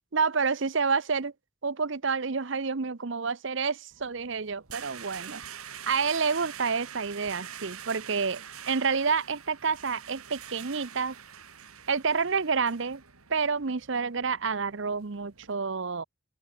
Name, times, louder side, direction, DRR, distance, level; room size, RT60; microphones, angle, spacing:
voice 1, 0.1-1.3 1.6-5.4 5.9-11.1 11.9-13.0 13.3-16.0, right 5 dB, 55° right, 0.8 m, -29 dB
sound 1, 3.9-15.5, right 9 dB, 85° right, 2.8 m, -45 dB
open air
head